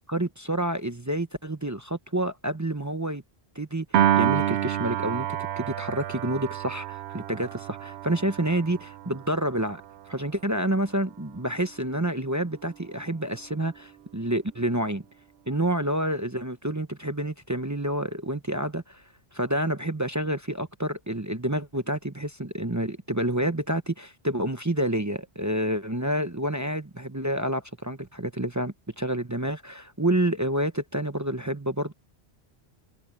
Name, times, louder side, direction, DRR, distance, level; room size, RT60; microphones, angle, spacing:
voice 1, 0.1-3.2 3.5-3.9 4.2-5.3 5.6-9.8 10.1-15.0 15.5-19.0 19.3-31.9, right 1 dB, 20° right, 0.8 m, -28 dB
Piano, 3.9-10.3, right 11 dB, 80° right, 0.9 m, -28 dB
omnidirectional pair, 1.1 m